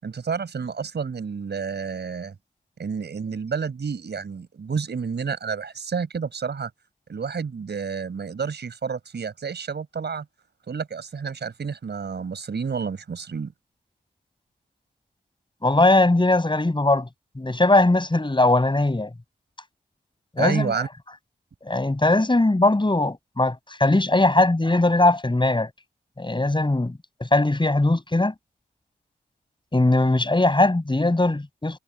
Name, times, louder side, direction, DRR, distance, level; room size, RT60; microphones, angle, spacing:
voice 1, 0.0-2.3 2.8-6.7 7.1-10.2 10.7-13.5 20.4-20.9, right 6 dB, 65° right, 5.0 m, -30 dB
voice 2, 15.6-17.1 17.4-19.1 20.4-20.7 21.6-25.7 26.2-28.3 29.7-31.8, left 2 dB, 25° left, 6.5 m, -20 dB
supercardioid pair, 40°, 19 cm